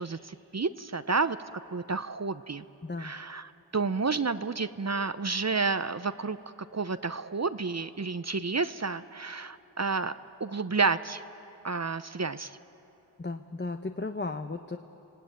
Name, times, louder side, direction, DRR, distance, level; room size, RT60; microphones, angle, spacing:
voice 1, 0.0-1.4 1.7-2.6 3.0-6.4 6.7-10.1 10.4-11.2 11.6-12.6, right 4 dB, 35° right, 12 dB, 0.7 m, -30 dB
voice 2, 13.2-14.8, left 3 dB, 25° left, 6 dB, 0.9 m, -35 dB
30.0 x 17.5 x 9.2 m, 3.0 s
wide cardioid pair, 50°, 44 cm